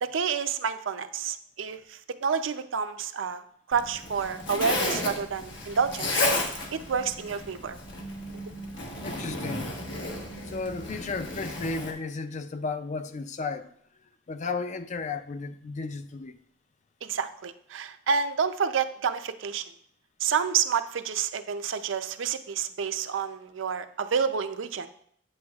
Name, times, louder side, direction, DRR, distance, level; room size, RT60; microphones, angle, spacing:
voice 1, 0.0-3.4 3.7-6.3 6.9-7.8 17.0-19.6 20.2-24.9, right 6 dB, 85° right, 0.5 m, -29 dB
Zipper (clothing), 3.7-11.9, left 2 dB, 65° left, 1.2 m, -33 dB
voice 2, 9.0-9.7 10.5-13.7 14.3-16.4, left 4 dB, 40° left, 0.4 m, -34 dB
8.5 x 7.8 x 2.4 m
head